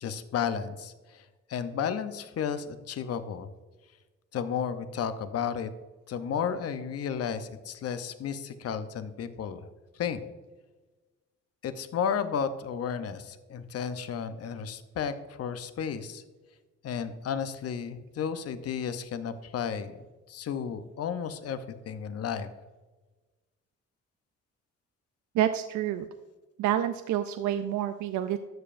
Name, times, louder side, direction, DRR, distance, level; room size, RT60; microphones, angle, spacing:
voice 1, 0.0-3.5 4.3-5.7 6.1-9.7 9.9-10.2 11.6-16.2 16.8-19.9 20.3-22.5, left 7 dB, 55° left, 11 dB, 0.7 m, -33 dB
voice 2, 25.3-26.1 26.6-28.4, right 11 dB, 70° right, 9 dB, 0.5 m, -28 dB
12.5 x 6.8 x 2.5 m, 1.2 s
cardioid pair, 90°, 30 cm